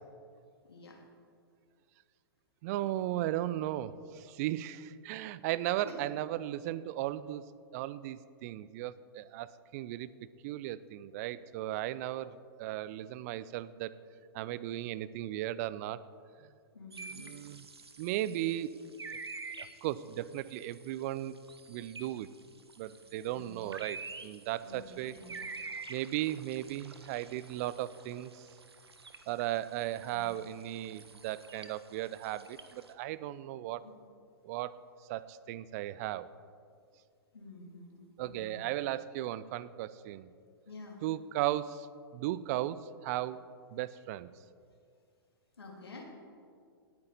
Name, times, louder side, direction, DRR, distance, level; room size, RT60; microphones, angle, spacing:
voice 1, 0.6-1.0 5.8-5.9 16.7-17.2 23.3-23.7 24.6-25.4 30.1-30.3 33.8-33.9 37.3-38.7 40.7-41.0 45.6-46.0, left 2 dB, 75° left, 0 dB, 2.7 m, -49 dB
voice 2, 2.6-7.4 7.7-10.1 10.4-14.0 14.3-16.0 17.1-17.6 18.0-19.2 19.6-21.3 21.7-22.3 22.8-25.1 25.9-28.5 29.3-33.8 34.4-34.8 35.1-36.3 38.2-40.3 41.0-43.4 43.7-44.3, right 14 dB, 40° right, 17 dB, 0.5 m, -36 dB
sound 1, 16.9-32.9, right 4 dB, 80° right, 1.0 m, -49 dB
18.0 x 9.1 x 4.1 m, 2.2 s
figure-of-eight pair, 110°, 13 cm